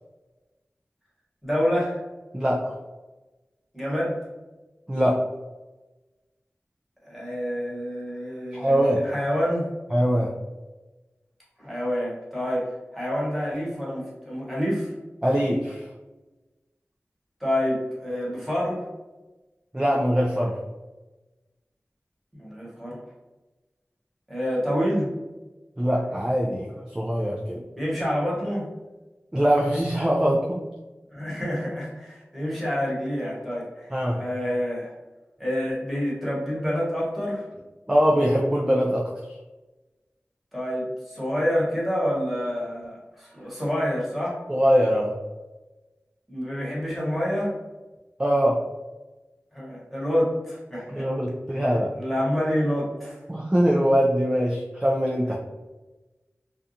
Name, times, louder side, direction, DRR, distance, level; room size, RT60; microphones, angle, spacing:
voice 1, 1.4-2.0 3.7-4.2 7.0-9.7 11.6-14.9 17.4-18.8 22.4-23.0 24.3-25.1 27.7-28.7 31.1-34.9 35.4-37.5 40.5-44.4 46.3-47.5 49.5-51.1 51.5-51.6 52.0-53.2, equal, ahead, -6 dB, 1.1 m, -27 dB
voice 2, 2.3-2.7 4.9-5.2 8.5-9.0 9.9-10.3 15.2-15.9 19.7-20.6 25.8-27.6 29.3-30.6 33.9-34.2 37.9-39.1 44.5-45.1 48.2-48.6 50.9-51.9 53.3-55.4, equal, 15° right, -2 dB, 0.3 m, -22 dB
2.5 x 2.3 x 2.7 m, 1.1 s
wide cardioid pair, 60°, 5 cm